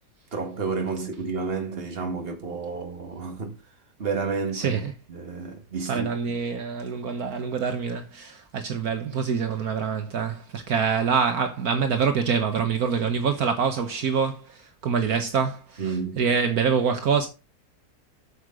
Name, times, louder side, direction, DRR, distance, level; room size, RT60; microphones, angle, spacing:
voice 1, 0.3-3.6 4.0-4.8 5.1-6.1 15.8-16.3, right 4 dB, 35° right, 1.9 m, -30 dB
voice 2, 4.5-4.9 5.9-15.8 16.2-17.3, right 6 dB, 65° right, 1.5 m, -25 dB
8.6 x 6.5 x 5.1 m
omnidirectional pair, 1.7 m